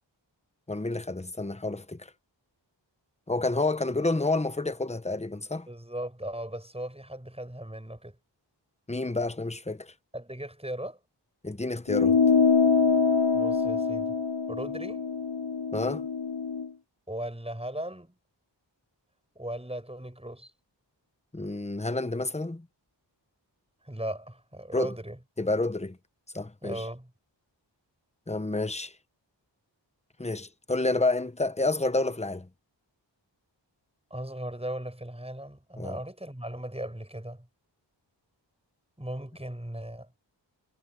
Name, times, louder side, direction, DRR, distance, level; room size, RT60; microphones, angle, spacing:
voice 1, 0.7-2.1 3.3-5.7 8.9-9.9 11.4-12.2 15.7-16.0 21.3-22.7 24.7-24.9 25.4-26.0 26.3-26.8 28.3-28.9 30.2-32.5 35.8-36.0, left 2 dB, 15° left, 1.0 m, -29 dB
voice 2, 5.7-8.1 10.1-11.0 13.3-14.1 14.5-15.0 17.1-18.1 19.3-20.5 23.8-25.2 26.6-27.1 34.1-37.5 39.0-40.1, right 1 dB, 15° right, 6.6 m, -37 dB
sound 1, 11.9-16.7, left 5 dB, 75° left, 1.0 m, -24 dB
wide cardioid pair, 55°, 44 cm